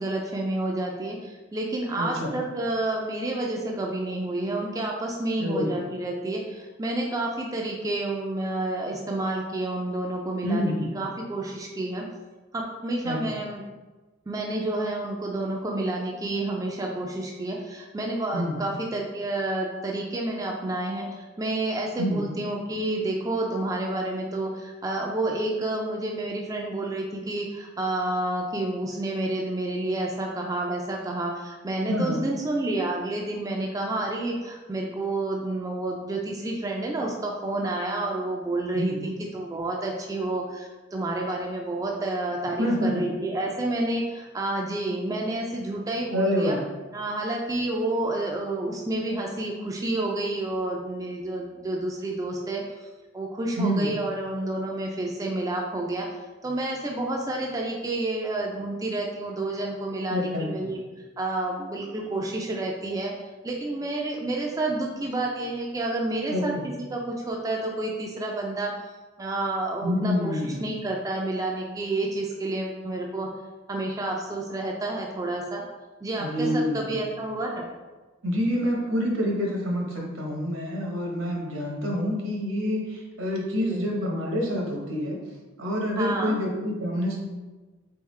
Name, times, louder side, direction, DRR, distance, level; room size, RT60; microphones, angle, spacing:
voice 1, 0.0-12.1 12.5-13.6 14.3-46.6 46.9-52.9 53.1-56.1 56.4-60.8 61.2-63.1 63.4-66.5 66.9-68.7 69.2-73.3 73.7-75.6 76.0-77.7 83.6-83.9 85.9-86.4, right 2 dB, 15° right, -1 dB, 0.3 m, -29 dB
voice 2, 2.0-2.3 5.4-5.7 10.4-10.9 13.0-13.4 18.3-18.6 22.0-22.2 31.9-32.2 38.7-39.0 42.4-43.1 46.1-46.6 53.6-53.9 60.1-60.7 66.3-66.6 69.8-70.7 76.2-77.0 78.2-85.2 85.6-87.2, left 1 dB, 80° right, -1 dB, 1.0 m, -27 dB
3.7 x 3.5 x 3.1 m, 1.2 s
head